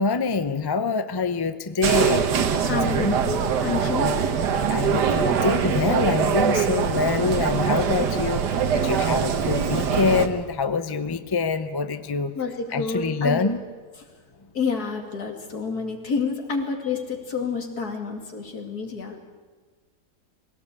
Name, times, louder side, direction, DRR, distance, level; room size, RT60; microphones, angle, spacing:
voice 1, 0.0-2.3 2.6-3.2 3.9-4.3 4.7-8.4 8.7-12.3 12.7-13.6, left 4 dB, 30° left, 11 dB, 0.4 m, -25 dB
sound 1, 1.8-10.3, right 7 dB, 85° right, 1.8 m, -23 dB
voice 2, 2.6-4.2 12.3-13.5 14.5-19.2, left 5 dB, 70° left, 3 dB, 2.9 m, -29 dB
21.5 x 17.5 x 8.5 m, 1.4 s
omnidirectional pair, 1.7 m